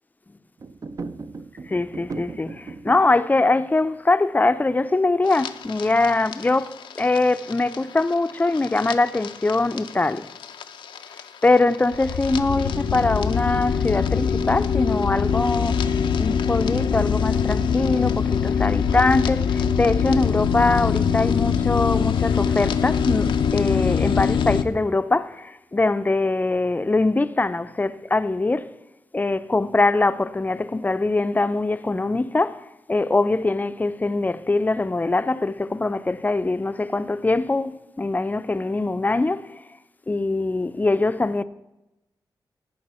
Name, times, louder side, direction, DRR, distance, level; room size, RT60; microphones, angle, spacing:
sound 1, 0.6-3.1, right 4 dB, 45° right, 0.5 m, -36 dB
voice 1, 1.7-10.3 11.4-15.9 16.2-28.7 29.1-39.6 40.1-41.4, left 2 dB, 20° left, 0.5 m, -22 dB
sound 2, 5.3-24.6, left 7 dB, 90° left, 0.5 m, -23 dB
16.0 x 5.5 x 4.3 m
cardioid pair, 75°, 8 cm